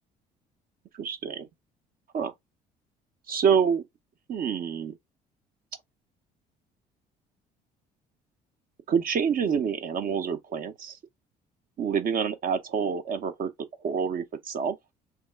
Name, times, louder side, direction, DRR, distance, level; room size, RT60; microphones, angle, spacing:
voice 1, 1.0-1.5 2.1-2.3 3.3-3.8 4.3-5.0 8.9-11.0 11.8-13.5 13.8-14.8, right 7 dB, 40° right, 0.6 m, -27 dB
3.4 x 2.3 x 3.4 m
figure-of-eight pair, 55°, 21 cm